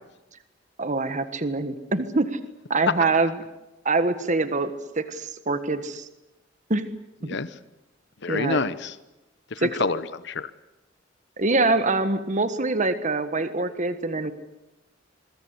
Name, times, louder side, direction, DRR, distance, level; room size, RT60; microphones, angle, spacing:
voice 1, 0.8-2.4 2.7-3.3 3.8-4.7 5.0-6.1 6.7-6.9 7.2-7.4 8.3-8.6 9.6-9.8 11.4-14.3, right 3 dB, 40° right, 11 dB, 1.5 m, -24 dB
voice 2, 7.3-7.6 8.2-9.0 9.5-10.5, left 4 dB, 65° left, 14 dB, 1.0 m, -28 dB
25.5 x 23.0 x 8.3 m, 0.98 s
head